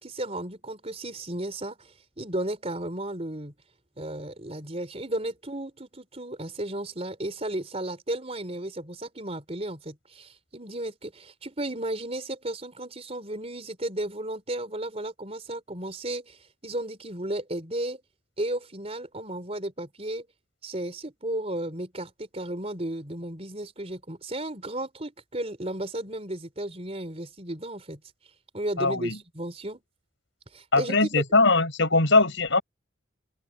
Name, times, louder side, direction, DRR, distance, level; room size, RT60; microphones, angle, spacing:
voice 1, 0.0-3.5 4.0-18.0 18.4-20.3 20.6-28.0 28.5-29.8 30.5-31.2, right 1 dB, 30° right, 4.2 m, -34 dB
voice 2, 28.8-29.2 30.7-32.6, left 3 dB, 65° left, 6.6 m, -21 dB
open air
head